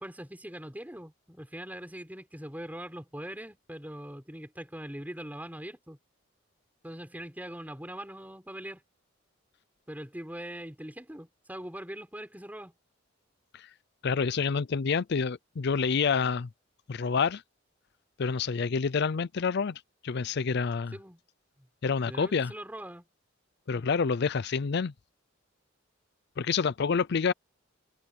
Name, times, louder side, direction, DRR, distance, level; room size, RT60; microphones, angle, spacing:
voice 1, 0.0-6.0 6.8-8.8 9.9-12.7 20.9-21.2 21.6-21.7 22.0-23.0, right 1 dB, 10° right, 4.7 m, -42 dB
voice 2, 14.0-16.5 16.9-17.4 18.2-20.9 21.8-22.5 23.7-24.9 26.4-27.3, left 5 dB, 55° left, 0.5 m, -28 dB
head